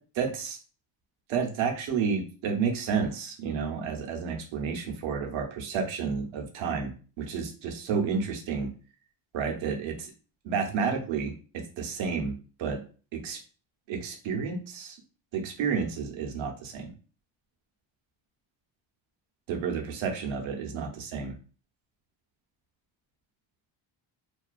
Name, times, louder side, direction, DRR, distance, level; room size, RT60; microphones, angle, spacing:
voice 1, 0.2-0.6 1.3-8.7 9.3-10.1 10.4-12.3 12.6-12.8 13.1-13.4 13.9-15.0 15.3-16.9 19.5-21.4, right 6 dB, 70° right, 2 dB, 0.7 m, -31 dB
2.4 x 2.3 x 2.2 m, 0.38 s
cardioid pair, 155°, 49 cm